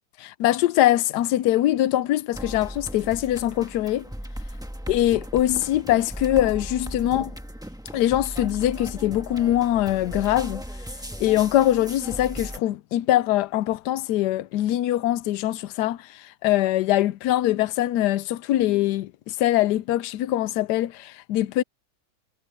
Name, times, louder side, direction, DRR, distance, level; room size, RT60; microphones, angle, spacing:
voice 1, 0.2-4.0 4.9-7.3 7.9-10.6 11.2-21.6, left 13 dB, 75° left, 1.1 m, -23 dB
sound 1, 2.3-12.6, equal, ahead, 1.1 m, -37 dB
omnidirectional pair, 2.0 m